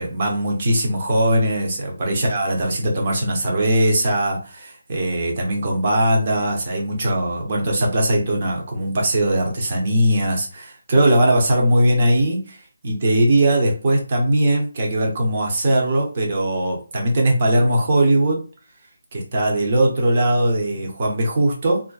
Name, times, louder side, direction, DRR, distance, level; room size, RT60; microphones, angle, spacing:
voice 1, 0.0-12.6 12.8-18.4 19.1-21.8, right 1 dB, 35° right, 0 dB, 0.8 m, -20 dB
2.5 x 2.1 x 2.3 m, 0.37 s
figure-of-eight pair, 165°, 0 cm